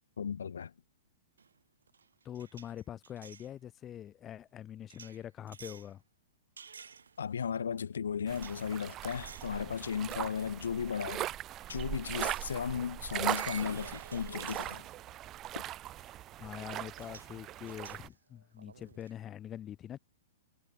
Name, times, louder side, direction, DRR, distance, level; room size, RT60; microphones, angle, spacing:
voice 1, 0.2-0.7 7.2-11.3 11.7-14.9, left 7 dB, 80° left, 0.9 m, -35 dB
sound 1, 1.4-1.6 1.9-3.5 4.9-5.9 6.6-7.4 8.3-8.6 9.1-9.6 10.0-10.2 11.7-11.8 13.2-15.3 16.6-16.7 17.0-17.3 17.7-19.1, right 6 dB, 90° right, 1.7 m, -51 dB
voice 2, 2.2-6.0 16.1-20.0, left 10 dB, 25° left, 4.9 m, -44 dB
sound 2, 8.3-18.1, right 13 dB, 30° right, 0.4 m, -40 dB
hypercardioid pair, 125°, 0 cm